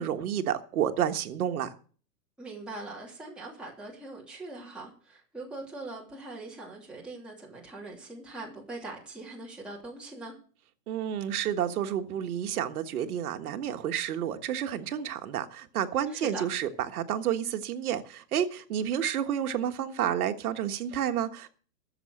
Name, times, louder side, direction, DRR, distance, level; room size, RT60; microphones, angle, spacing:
voice 1, 0.0-1.7 10.9-21.5, right 9 dB, 60° right, 1.6 m, -30 dB
voice 2, 2.4-10.4 16.1-16.4, right 2 dB, ahead, 2.9 m, -42 dB
14.0 x 7.1 x 6.5 m
hypercardioid pair, 150°, 49 cm